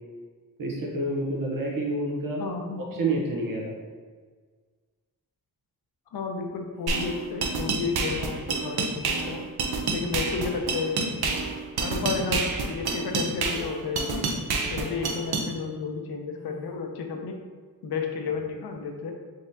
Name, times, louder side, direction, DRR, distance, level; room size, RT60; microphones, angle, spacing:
voice 1, 0.6-2.4 2.9-3.6, right 2 dB, 60° right, -1 dB, 0.9 m, -28 dB
voice 2, 2.4-3.0 6.1-9.5 9.9-11.2 11.8-14.3 14.7-17.4 17.8-19.1, left 5 dB, 85° left, 3 dB, 0.6 m, -32 dB
sound 1, 6.7-7.1 7.8-8.2 8.8-9.3 9.9-10.3 11.0-11.4 12.1-12.5 13.1-13.5 14.2-14.6 15.3-15.7 16.3-16.7, left 1 dB, 5° left, 0.7 m, -46 dB
sound 2, 6.9-15.5, right 4 dB, 90° right, 0.6 m, -28 dB
3.9 x 3.5 x 2.7 m, 1.6 s
wide cardioid pair, 175°, 37 cm